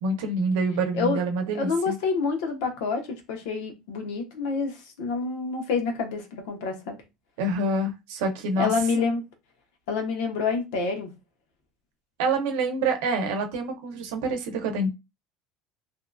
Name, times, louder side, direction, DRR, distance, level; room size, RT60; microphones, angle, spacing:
voice 1, 0.0-2.0 7.4-8.7 12.2-14.9, right 2 dB, 90° right, 0.7 m, -26 dB
voice 2, 1.5-7.0 8.6-9.2 9.9-11.1, left 4 dB, 80° left, 0.9 m, -27 dB
2.7 x 2.4 x 2.2 m
cardioid pair, 155°, 0 cm